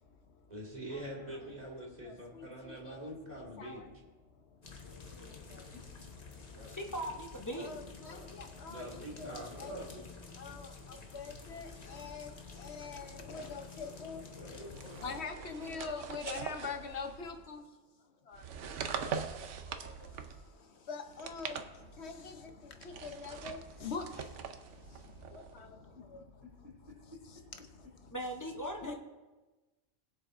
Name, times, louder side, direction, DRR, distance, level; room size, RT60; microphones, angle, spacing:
voice 1, 0.5-3.8 8.7-10.0, right 1 dB, 35° right, -4 dB, 2.5 m, -44 dB
voice 2, 2.0-3.1 3.6-3.8 7.6-9.3 9.6-9.7 10.4-10.7 11.1-12.3 12.6-14.2 15.0-17.6 18.3-18.4 19.8-19.9 20.9-21.6 22.0-22.4 23.0-24.0 25.3-25.7 26.1-26.2 28.8-28.9, left 5 dB, 70° left, 6 dB, 1.2 m, -43 dB
sound 1, 4.6-15.2, left 4 dB, 35° left, 1.1 m, -50 dB
voice 3, 4.8-5.8 6.4-7.1 7.6-8.3 8.8-10.0 14.4-15.1 15.3-15.8 25.9-26.0 26.4-26.7, left 1 dB, 20° right, -8 dB, 3.3 m, -53 dB
voice 4, 6.8-7.7 28.1-28.9, right 1 dB, 20° left, 1 dB, 0.8 m, -39 dB
sound 2, 14.7-17.5 18.3-20.5 21.1-22.2 22.8-25.6, right 6 dB, 85° right, 1.0 m, -43 dB
20.5 x 7.6 x 2.6 m, 1.2 s
omnidirectional pair, 1.2 m